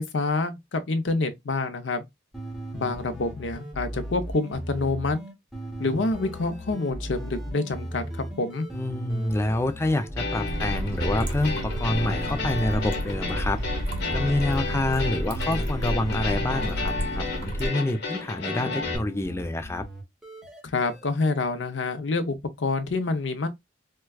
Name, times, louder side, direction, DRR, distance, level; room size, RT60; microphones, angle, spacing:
voice 1, 0.0-2.0 2.7-5.2 5.8-8.7 20.6-23.5, left 3 dB, 85° left, 0.6 m, -27 dB
sound 1, 2.3-18.2 18.8-21.1, right 1 dB, ahead, 0.8 m, -37 dB
voice 2, 8.7-13.6 14.1-19.9, left 1 dB, 15° left, 0.4 m, -27 dB
sound 2, 10.2-19.0, left 3 dB, 65° left, 1.0 m, -32 dB
Water-Fan, 10.5-17.7, equal, 85° right, 0.9 m, -31 dB
4.5 x 2.2 x 2.3 m
head